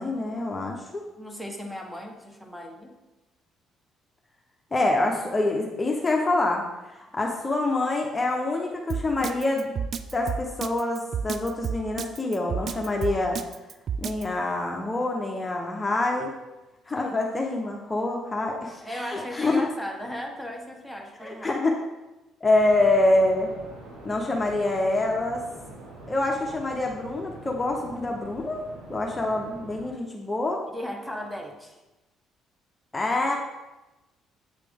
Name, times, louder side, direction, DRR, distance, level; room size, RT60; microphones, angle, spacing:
voice 1, 0.0-1.0 4.7-6.6 6.9-9.9 10.1-13.4 14.0-16.3 16.9-19.6 21.2-21.7 22.4-23.5 24.0-25.4 26.1-30.6 32.9-33.3, left 2 dB, 20° left, 0 dB, 0.8 m, -26 dB
voice 2, 1.2-2.9 16.9-17.2 18.8-21.6 30.7-31.8, equal, 5° right, 2 dB, 1.1 m, -37 dB
Drum kit, 8.9-14.2, right 7 dB, 55° right, 0.3 m, -30 dB
sound 1, 22.5-29.9, right 2 dB, 85° right, 1.3 m, -44 dB
8.4 x 3.3 x 3.5 m, 1.1 s
supercardioid pair, 70°, 0 cm